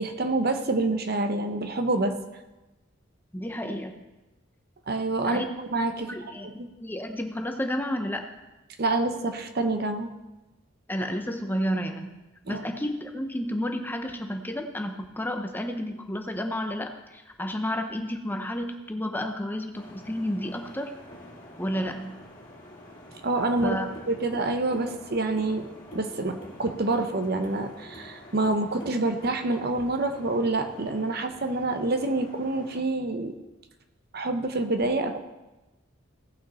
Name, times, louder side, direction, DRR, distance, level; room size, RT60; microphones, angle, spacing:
voice 1, 0.0-2.2 4.9-5.4 5.7-6.1 6.4-6.7 8.8-10.1 12.5-12.6 23.2-23.8 24.1-33.3 34.1-35.2, right 2 dB, 50° right, 7 dB, 0.9 m, -27 dB
voice 2, 3.3-3.9 5.2-5.5 6.0-6.5 6.8-8.3 10.9-12.1 12.5-20.9 21.6-22.1 23.6-23.9, equal, 10° left, 5 dB, 0.7 m, -31 dB
sound 1, 19.7-32.8, left 1 dB, 45° left, 2.3 m, -46 dB
17.5 x 5.9 x 4.2 m, 1.1 s
head